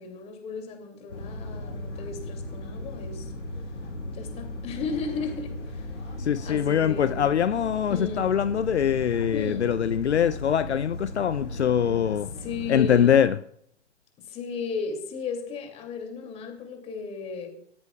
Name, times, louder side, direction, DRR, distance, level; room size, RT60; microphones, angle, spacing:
voice 1, 0.0-3.3 4.1-6.0 6.4-7.3 7.9-8.3 9.3-9.8 12.4-13.2 14.2-17.5, left 5 dB, 20° left, 2.7 m, -35 dB
sound 1, 1.1-13.2, left 1 dB, 90° left, 2.1 m, -37 dB
voice 2, 6.2-12.3 12.7-13.4, left 9 dB, 70° left, 0.7 m, -23 dB
24.0 x 13.5 x 2.4 m
figure-of-eight pair, 125°, 35 cm